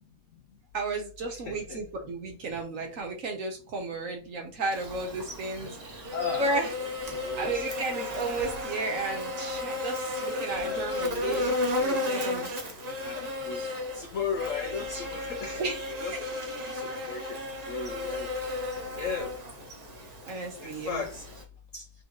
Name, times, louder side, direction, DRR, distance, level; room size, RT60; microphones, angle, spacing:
voice 1, 0.7-6.1 6.4-6.7 7.4-11.6 11.8-12.5 15.6-15.9 19.0-19.1 20.3-21.0, right 3 dB, 55° right, 2 dB, 1.1 m, -33 dB
voice 2, 1.3-1.8 6.1-6.9 7.2-7.7 10.6-11.6 11.9-12.0 13.0-13.6 13.9-17.4 17.7-18.3 19.0-19.3 20.6-21.2 21.7-21.8, left 6 dB, 85° left, 6 dB, 0.6 m, -36 dB
Buzz, 4.7-21.4, left 2 dB, 35° right, 0.6 m, -34 dB
4.2 x 3.5 x 2.9 m, 0.35 s
omnidirectional pair, 2.0 m